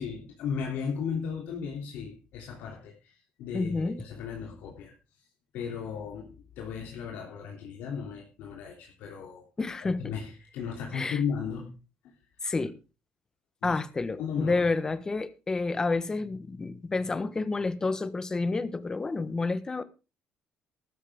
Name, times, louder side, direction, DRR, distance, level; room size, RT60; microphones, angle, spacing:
voice 1, 0.0-4.9 5.5-9.4 9.8-11.7 13.6-13.8 14.2-14.6, left 6 dB, 75° left, 3.1 m, -35 dB
voice 2, 3.5-4.0 9.6-10.1 10.9-11.2 12.4-12.8 13.6-19.8, left 3 dB, 20° left, 1.3 m, -29 dB
14.0 x 13.0 x 3.7 m
cardioid pair, 115°, 3 cm